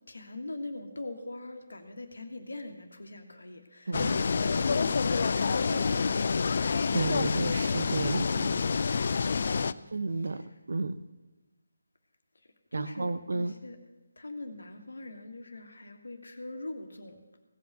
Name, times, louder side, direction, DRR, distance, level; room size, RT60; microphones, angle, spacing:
voice 1, 0.1-6.6 9.6-9.9 12.7-13.8 14.2-17.2, left 2 dB, 70° left, 5 dB, 1.7 m, -41 dB
sound 1, 3.9-9.7, left 5 dB, 50° left, 0.4 m, -27 dB
voice 2, 3.9-4.2 6.9-8.7 9.9-11.0 12.7-13.6, right 3 dB, 60° right, 12 dB, 0.6 m, -32 dB
16.5 x 5.8 x 8.1 m, 1.1 s
figure-of-eight pair, 155°, 0 cm